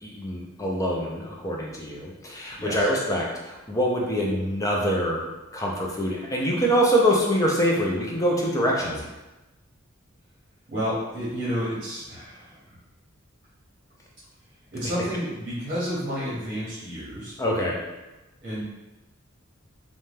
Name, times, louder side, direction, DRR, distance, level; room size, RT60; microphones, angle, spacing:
voice 1, 0.0-5.2 5.5-8.9 17.4-17.8, equal, 15° left, -2 dB, 0.4 m, -24 dB
voice 2, 2.6-2.9 8.8-9.0 10.7-12.8 14.7-17.3 18.4-18.6, equal, 40° right, -8 dB, 0.8 m, -31 dB
2.6 x 2.1 x 3.2 m, 1.0 s
head